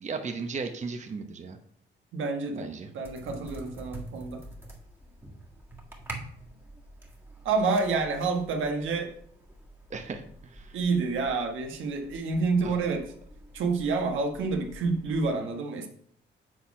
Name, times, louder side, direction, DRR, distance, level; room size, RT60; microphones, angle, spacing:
voice 1, 0.0-1.6 2.5-2.9 9.9-10.8 12.6-12.7, right 4 dB, 35° right, 5 dB, 0.9 m, -36 dB
voice 2, 2.1-2.7 2.9-4.4 7.4-9.1 10.7-13.1 13.5-15.9, right 4 dB, 80° right, 3 dB, 1.3 m, -28 dB
sound 1, 3.0-15.3, right 1 dB, 10° right, 1.7 m, -46 dB
7.8 x 4.2 x 4.8 m, 0.62 s
cardioid pair, 90°, 20 cm